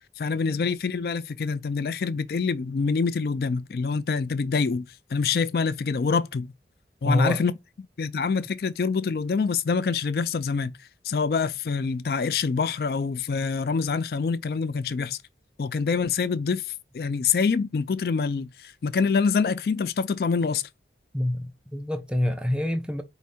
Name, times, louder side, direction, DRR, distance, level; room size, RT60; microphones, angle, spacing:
voice 1, 0.2-6.5 7.0-7.5 8.0-10.7 11.0-15.2 15.6-20.6, left 5 dB, 55° left, 0.4 m, -26 dB
voice 2, 7.0-7.4 21.1-23.0, left 1 dB, 5° right, 0.5 m, -26 dB
4.8 x 2.6 x 4.2 m
head